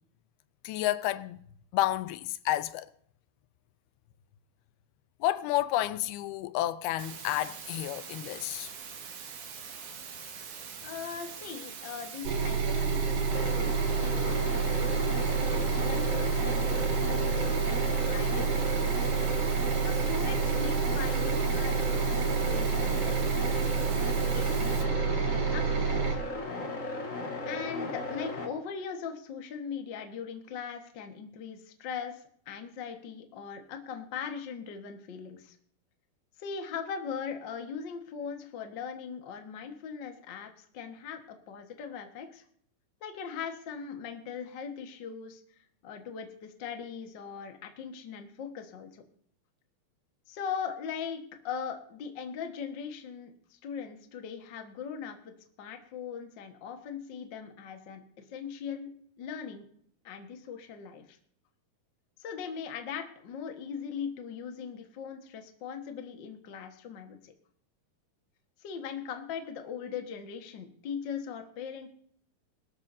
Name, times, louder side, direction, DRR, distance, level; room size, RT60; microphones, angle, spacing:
voice 1, 0.6-1.4 1.7-2.9 5.2-8.7, left 14 dB, 85° left, 2.6 m, -30 dB
sound 1, 7.0-24.8, right 6 dB, 60° right, 3.0 m, -43 dB
voice 2, 10.8-15.2 15.5-18.5 18.8-19.2 19.8-26.0 27.4-35.6 36.4-41.2 41.5-42.4 43.0-49.0 50.3-55.3 55.6-59.7 60.0-61.2 62.2-67.3 68.6-71.9, left 7 dB, 70° left, 1.0 m, -40 dB
sound 2, 12.3-26.2, right 6 dB, 80° right, 4.8 m, -28 dB
sound 3, 13.3-28.5, left 2 dB, 40° left, 1.1 m, -36 dB
22.0 x 13.0 x 2.7 m
omnidirectional pair, 4.4 m